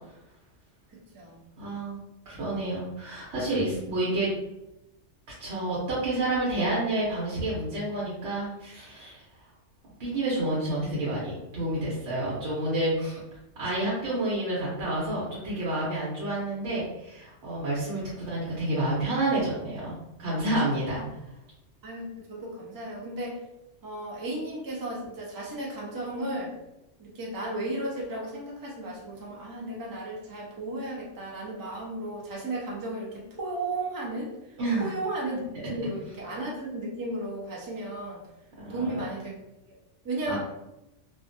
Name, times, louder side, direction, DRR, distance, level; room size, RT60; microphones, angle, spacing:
voice 1, 1.6-2.0 2.3-4.3 5.4-9.2 10.0-13.2 13.6-21.0 34.6-34.9 38.6-39.2 40.3-40.4, right 1 dB, 65° right, -7 dB, 1.0 m, -29 dB
voice 2, 21.8-23.4 23.8-26.5 27.0-34.3 34.8-35.4 35.7-38.2 38.7-39.3 39.7-39.8 40.0-40.4, right 1 dB, 30° right, -3 dB, 0.3 m, -34 dB
2.5 x 2.2 x 2.5 m, 0.91 s
omnidirectional pair, 1.3 m